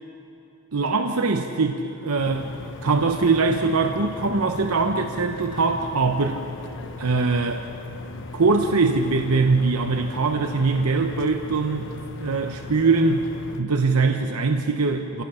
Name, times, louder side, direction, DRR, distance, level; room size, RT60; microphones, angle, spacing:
voice 1, 0.7-2.5 2.8-6.4 7.0-7.7 8.3-13.2 13.6-15.2, right 4 dB, 85° right, 4 dB, 0.9 m, -22 dB
sound 1, 2.2-13.6, left 3 dB, 60° left, 1.1 m, -38 dB
27.5 x 17.0 x 5.7 m, 2.9 s
head